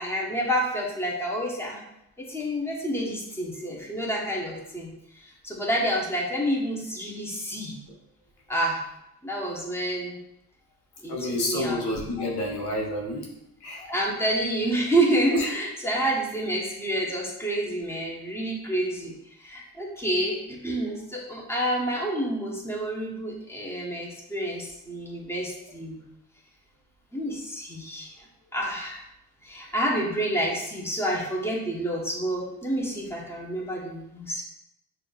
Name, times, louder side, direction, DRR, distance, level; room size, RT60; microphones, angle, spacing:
voice 1, 0.0-1.8 2.2-7.7 8.5-8.8 9.2-10.2 11.0-12.1 13.8-19.1 19.4-26.0 27.1-28.1 28.5-29.0 29.4-34.4, right 1 dB, 5° left, -2 dB, 1.0 m, -29 dB
voice 2, 11.1-13.3 13.6-13.8 15.3-15.5, left 1 dB, 85° left, -2 dB, 1.2 m, -29 dB
6.0 x 2.7 x 2.4 m, 0.84 s
cardioid pair, 70°, 38 cm